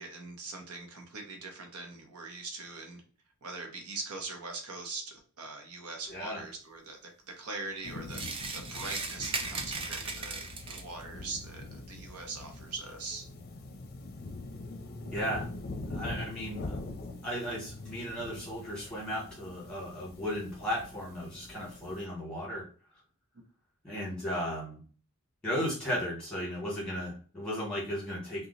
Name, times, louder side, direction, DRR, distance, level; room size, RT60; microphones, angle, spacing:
voice 1, 0.0-3.0 3.4-8.2 8.5-13.2, right 3 dB, 90° right, 3 dB, 0.8 m, -42 dB
voice 2, 6.1-6.4 15.1-15.5 15.9-16.8 17.2-22.6 23.8-24.8 25.4-28.5, equal, 5° left, -5 dB, 1.5 m, -35 dB
sound 1, 7.8-22.1, left 2 dB, 45° left, 0.5 m, -43 dB
sound 2, 8.1-11.0, right 4 dB, 25° right, 0.3 m, -37 dB
2.9 x 2.3 x 3.8 m, 0.41 s
head